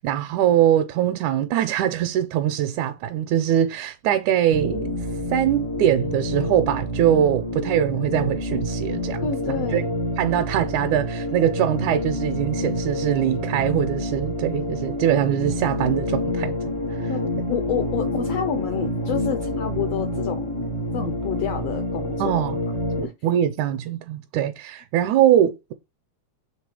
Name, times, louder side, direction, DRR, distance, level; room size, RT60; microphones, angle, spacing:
voice 1, 0.0-5.0 5.3-9.8 10.2-16.7 17.0-17.1 22.2-22.6 23.0-25.7, right 11 dB, 80° right, 2.0 m, -22 dB
sound 1, 4.5-23.0, left 1 dB, 50° right, 0.4 m, -28 dB
voice 2, 9.2-9.9 17.1-20.5 20.9-22.5 23.0-23.1, left 8 dB, 80° left, 1.4 m, -29 dB
7.3 x 3.6 x 4.8 m
omnidirectional pair, 3.6 m